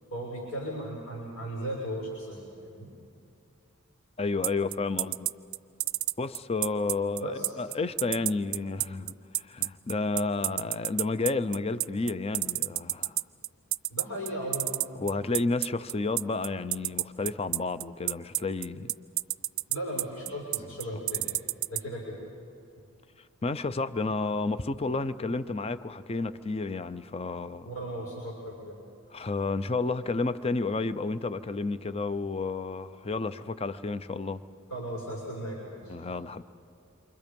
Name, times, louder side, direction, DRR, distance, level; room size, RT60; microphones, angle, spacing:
voice 1, 0.1-2.9 7.2-7.5 13.9-14.7 19.7-21.3 21.7-22.2 27.6-28.8 34.7-36.0, equal, 85° left, -4 dB, 6.3 m, -36 dB
voice 2, 4.2-5.3 6.2-13.2 15.0-18.9 23.4-27.7 29.1-34.4 35.9-36.4, left 3 dB, 25° left, 13 dB, 0.5 m, -31 dB
sound 1, 4.4-21.8, right 19 dB, 70° right, 0.4 m, -29 dB
28.0 x 24.5 x 5.3 m, 2.5 s
head